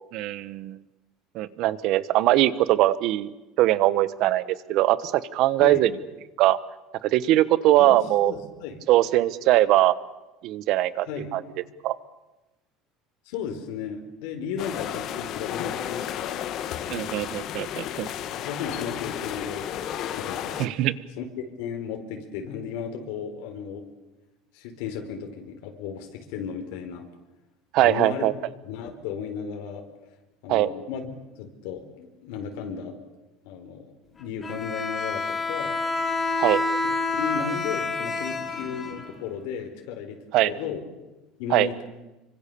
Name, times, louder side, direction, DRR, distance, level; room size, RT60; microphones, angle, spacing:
voice 1, 0.1-0.8 1.3-3.3 3.6-5.9 6.4-6.6 7.0-8.3 8.9-9.9 10.4-11.1 11.3-11.4 11.8-12.0 16.9-18.1 20.6-20.9 27.7-28.3 30.5-30.7 36.4-36.6 40.3-40.5 41.5-41.7, right 15 dB, 55° right, 17 dB, 1.2 m, -21 dB
voice 2, 5.6-5.9 7.8-8.8 11.1-11.3 13.3-16.4 18.2-20.9 21.2-21.3 21.6-23.8 24.5-27.0 27.8-28.3 28.6-29.8 30.4-33.0 33.4-35.8 36.8-40.8 41.4-41.8, left 7 dB, 80° left, 4 dB, 4.3 m, -35 dB
sound 1, 14.6-20.7, left 10 dB, 50° left, 1.6 m, -33 dB
Bowed string instrument, 34.4-39.4, left 3 dB, 20° left, 3.0 m, -28 dB
26.0 x 25.0 x 7.0 m, 1.0 s
cardioid pair, 145°, 0 cm